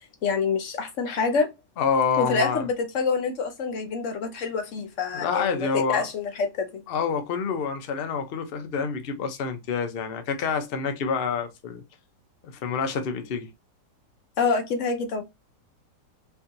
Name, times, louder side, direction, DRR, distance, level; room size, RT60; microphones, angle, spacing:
voice 1, 0.2-1.5 2.2-6.8 14.4-15.2, left 4 dB, 60° left, 0.8 m, -26 dB
voice 2, 1.8-2.6 5.1-6.1 6.9-11.8 12.4-13.5, left 6 dB, 80° left, 0.5 m, -27 dB
4.4 x 2.8 x 2.5 m
omnidirectional pair, 1.9 m